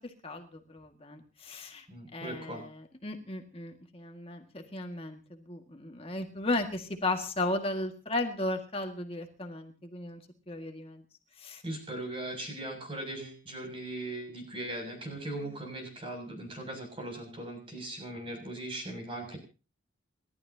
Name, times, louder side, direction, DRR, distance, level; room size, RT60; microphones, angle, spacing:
voice 1, 0.2-1.9 2.1-10.2 10.5-11.0 11.4-11.6 15.4-15.5 19.3-19.4, left 2 dB, 30° left, 4 dB, 1.9 m, -35 dB
voice 2, 1.9-2.6 11.6-19.4, right 1 dB, 30° right, 3 dB, 7.0 m, -39 dB
29.5 x 12.5 x 2.8 m, 0.33 s
head